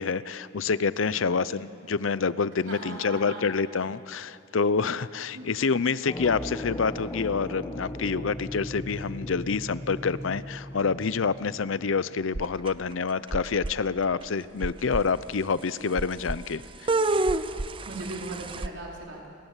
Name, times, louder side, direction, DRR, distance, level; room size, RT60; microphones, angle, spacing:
voice 1, 0.0-16.9, left 5 dB, 80° left, 17 dB, 0.6 m, -27 dB
voice 2, 2.7-3.5 5.3-5.5 17.9-19.3, right 2 dB, 65° right, -2 dB, 4.5 m, -38 dB
sound 1, 6.1-11.9, left 1 dB, 15° left, 1.0 m, -37 dB
sound 2, 12.3-12.9 13.3-13.7 14.2-14.3 14.6-15.0 16.0-16.4 16.9-18.7, right 2 dB, 25° right, 0.6 m, -28 dB
29.5 x 20.0 x 7.4 m, 2.7 s
head